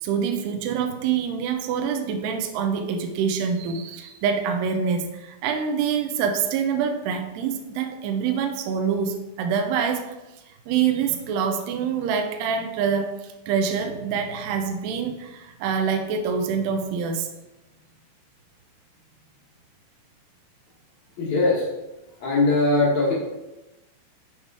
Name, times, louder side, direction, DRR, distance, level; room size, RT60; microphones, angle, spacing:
voice 1, 0.0-10.2 10.7-17.3, right 6 dB, 80° right, 5 dB, 2.4 m, -26 dB
voice 2, 21.2-21.7 22.2-23.1, left 2 dB, 80° left, -5 dB, 1.6 m, -20 dB
7.2 x 6.5 x 4.8 m, 1.0 s
omnidirectional pair, 5.9 m